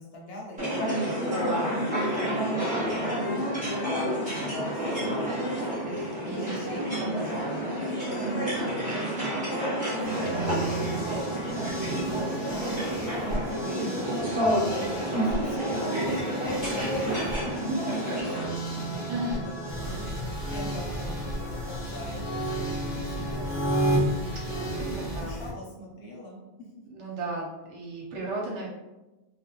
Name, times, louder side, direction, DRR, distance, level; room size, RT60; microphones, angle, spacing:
voice 1, 0.0-5.8 6.3-14.8 15.2-17.5 17.8-24.0 24.6-26.7, equal, 60° left, -3 dB, 0.9 m, -44 dB
sound 1, 0.6-18.4, equal, 5° right, 0.9 m, -29 dB
voice 2, 5.8-8.1 13.6-14.1 14.7-15.2 19.1-19.4 24.5-24.9 25.1-25.4 26.9-28.7, right 2 dB, 80° right, -3 dB, 1.1 m, -36 dB
sound 2, 10.0-25.2, right 1 dB, 20° left, 0.4 m, -33 dB
sound 3, 19.7-25.5, left 1 dB, 55° right, 0.7 m, -37 dB
2.4 x 2.1 x 2.9 m, 1.1 s
omnidirectional pair, 1.2 m